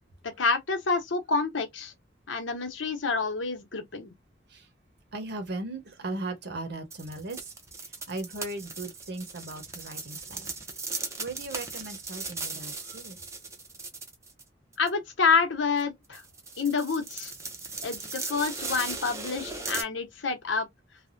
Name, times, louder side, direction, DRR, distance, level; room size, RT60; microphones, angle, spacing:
voice 1, 0.2-1.9 2.3-4.1 14.8-16.2 16.6-17.3 17.8-20.7, left 4 dB, 80° left, 0.9 m, -28 dB
voice 2, 5.1-7.5 7.8-10.8 11.2-13.2, right 2 dB, 60° right, 0.9 m, -38 dB
sound 1, 6.9-14.4 14.7-14.9 15.8-15.9 16.1-19.8, right 3 dB, 15° right, 0.6 m, -38 dB
3.3 x 2.2 x 2.5 m
head